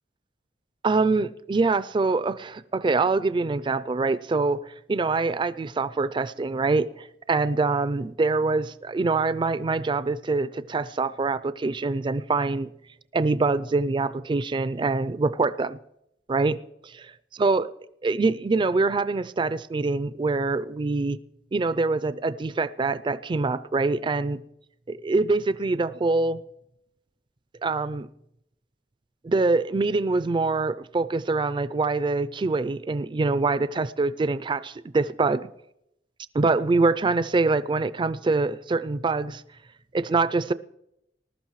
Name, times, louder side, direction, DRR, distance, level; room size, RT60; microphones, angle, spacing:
voice 1, 0.8-12.7 13.1-15.8 16.3-17.1 17.4-17.7 18.0-21.2 21.5-24.4 24.9-26.4 27.6-28.1 29.2-35.5 36.3-39.4 39.9-40.5, right 3 dB, 25° right, 0.4 m, -24 dB
20.0 x 12.0 x 3.1 m
head